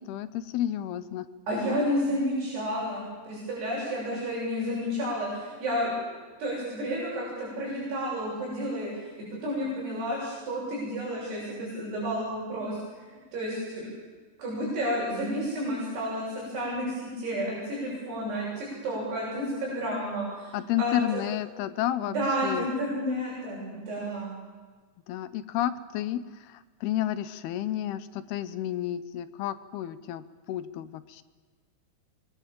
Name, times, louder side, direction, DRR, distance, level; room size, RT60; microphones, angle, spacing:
voice 1, 0.0-1.3 20.5-22.1 22.4-22.7 25.1-31.2, left 12 dB, 75° left, 13 dB, 2.7 m, -31 dB
voice 2, 1.5-6.0 6.4-9.1 9.4-12.8 13.3-13.9 14.4-20.5 20.8-21.2 22.0-24.3, equal, 75° right, -6 dB, 9.9 m, -31 dB
27.0 x 23.5 x 7.6 m, 1.4 s
omnidirectional pair, 4.8 m